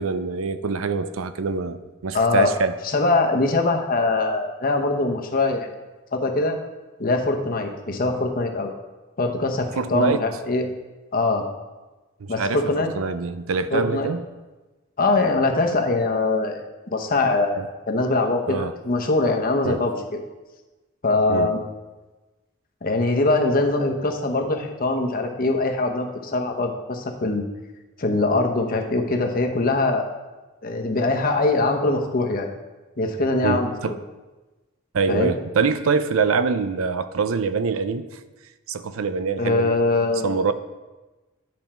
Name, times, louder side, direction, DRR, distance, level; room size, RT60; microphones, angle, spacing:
voice 1, 0.0-2.8 9.8-10.3 12.2-14.2 18.5-18.8 19.6-19.8 21.3-21.5 33.4-34.0 34.9-38.1 38.7-39.8 40.2-40.5, right 4 dB, 85° right, 12 dB, 0.5 m, -24 dB
voice 2, 2.1-2.5 2.8-5.7 6.1-6.6 7.0-8.7 9.2-10.7 11.1-11.5 12.3-12.9 13.7-14.1 15.0-16.6 16.9-20.0 21.0-21.6 22.8-27.4 28.0-30.1 30.6-32.5 33.0-33.9 35.1-35.3 39.4-40.4, left 2 dB, 45° left, 3 dB, 0.9 m, -22 dB
9.5 x 5.4 x 4.4 m, 1.2 s
head